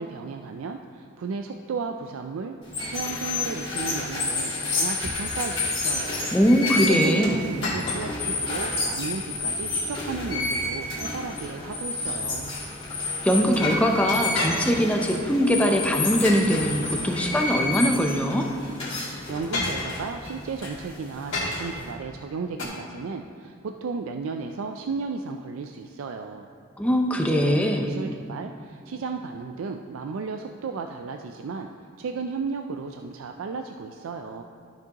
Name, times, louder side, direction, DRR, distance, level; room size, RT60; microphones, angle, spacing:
voice 1, 0.0-6.3 6.9-12.5 19.3-26.5 27.3-31.7 32.0-34.4, right 4 dB, 75° right, 5 dB, 0.3 m, -34 dB
sound 1, 2.6-21.9, left 2 dB, 25° left, 2.2 m, -30 dB
voice 2, 6.3-7.4 13.2-18.4 26.8-27.9, equal, 5° left, 2 dB, 0.5 m, -22 dB
sound 2, 7.2-8.4 8.8-8.9 9.5-9.8 11.7-12.6 14.3-15.3 16.2-17.4 18.5-18.7 19.5-20.4 21.3-21.9 22.6-22.7, left 2 dB, 65° left, 1.9 m, -32 dB
13.0 x 6.0 x 2.9 m, 2.2 s
head